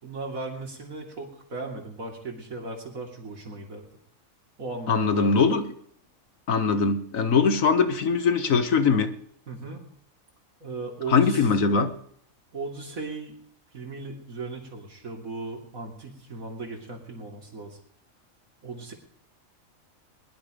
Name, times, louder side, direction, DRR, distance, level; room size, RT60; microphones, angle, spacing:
voice 1, 0.0-3.8 4.6-5.5 9.5-9.8 10.6-11.5 12.5-13.4 13.7-17.8 18.6-18.9, right 3 dB, 85° right, 0 dB, 3.3 m, -37 dB
voice 2, 4.9-5.7 6.5-9.1 11.1-11.9, left 5 dB, 80° left, 9 dB, 1.6 m, -21 dB
21.0 x 11.0 x 5.1 m, 0.63 s
omnidirectional pair, 1.4 m